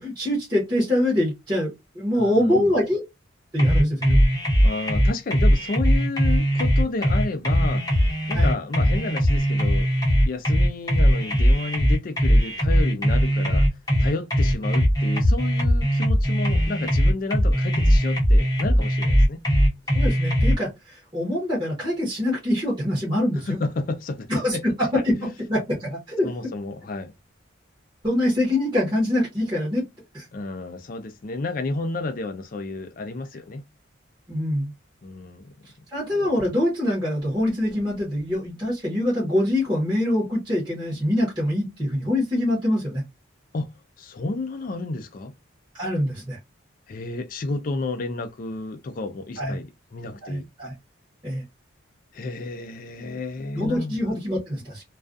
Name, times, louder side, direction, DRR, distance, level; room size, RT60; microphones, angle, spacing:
voice 1, 0.0-3.0 3.5-4.2 8.3-8.5 19.9-23.6 24.3-26.3 28.0-29.8 30.1-30.3 34.3-34.7 35.9-43.0 45.7-46.4 49.4-49.6 50.2-50.7 51.2-51.4 53.5-54.8, left 1 dB, 20° right, 0.9 m, -24 dB
voice 2, 2.1-2.8 4.6-7.8 8.3-9.9 10.3-13.7 14.0-19.4 23.5-24.6 25.1-25.3 26.2-27.1 30.3-33.7 35.0-35.5 43.5-45.3 46.9-50.4 52.1-54.0, left 2 dB, 45° left, 0.3 m, -31 dB
sound 1, 3.6-20.6, equal, 20° left, 0.7 m, -20 dB
2.3 x 2.2 x 2.4 m
head